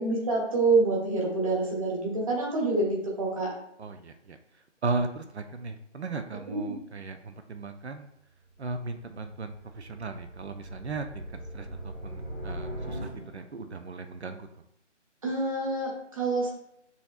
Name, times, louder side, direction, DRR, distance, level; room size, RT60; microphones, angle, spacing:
voice 1, 0.0-3.5 6.5-6.7 15.2-16.5, right 3 dB, 30° right, -3 dB, 1.1 m, -27 dB
voice 2, 3.8-4.4 4.8-8.1 8.6-14.5, right 3 dB, 65° right, 8 dB, 0.5 m, -36 dB
sound 1, 8.4-13.7, right 1 dB, 45° right, 1.7 m, -40 dB
7.0 x 2.8 x 2.4 m, 0.76 s
figure-of-eight pair, 160°, 36 cm